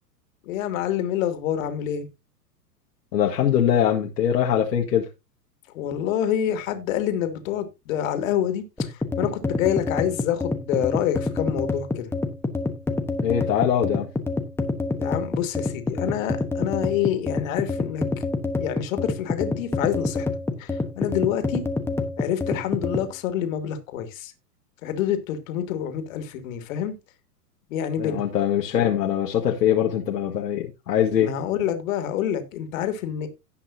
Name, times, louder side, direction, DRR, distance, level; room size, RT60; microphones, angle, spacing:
voice 1, 0.4-2.1 5.7-12.1 15.0-18.2 18.6-20.3 20.6-21.6 22.2-24.3 24.8-27.0 27.7-28.2 31.2-33.3, left 10 dB, 55° left, 2.6 m, -27 dB
voice 2, 3.1-5.1 13.2-14.1 28.0-31.3, left 9 dB, 75° left, 1.9 m, -22 dB
sound 1, 8.8-23.1, left 3 dB, 5° left, 1.1 m, -27 dB
17.5 x 6.0 x 2.8 m
hypercardioid pair, 110°, 49 cm